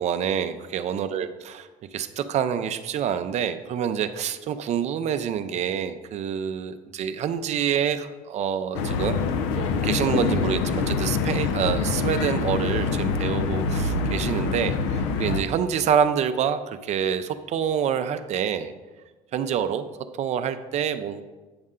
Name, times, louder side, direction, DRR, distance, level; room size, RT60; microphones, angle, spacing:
voice 1, 0.0-1.6 1.9-9.2 9.5-18.7 19.3-19.9 20.2-21.2, right 8 dB, 50° right, 10 dB, 0.5 m, -27 dB
sound 1, 8.7-15.4, left 4 dB, 90° left, 0.6 m, -25 dB
8.7 x 5.4 x 3.7 m, 1.2 s
supercardioid pair, 100°, 15 cm